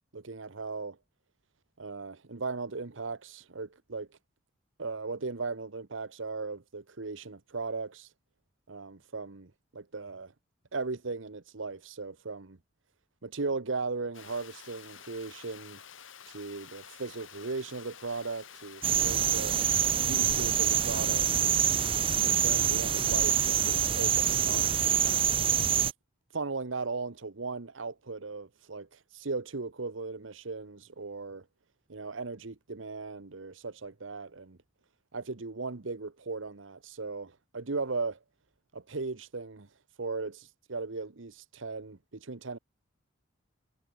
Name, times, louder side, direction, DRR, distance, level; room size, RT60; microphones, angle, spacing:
voice 1, 0.1-1.0 1.8-4.1 4.8-8.1 8.7-10.3 10.7-12.6 13.2-15.8 16.3-21.7 22.2-25.3 26.3-31.4 31.9-34.6 35.1-38.2 38.7-39.7 40.0-42.6, right 3 dB, 80° right, 1.0 m, -37 dB
Water, 14.1-25.2, left 8 dB, 80° left, 3.3 m, -50 dB
sound 1, 18.8-25.9, right 9 dB, 25° right, 0.5 m, -26 dB
head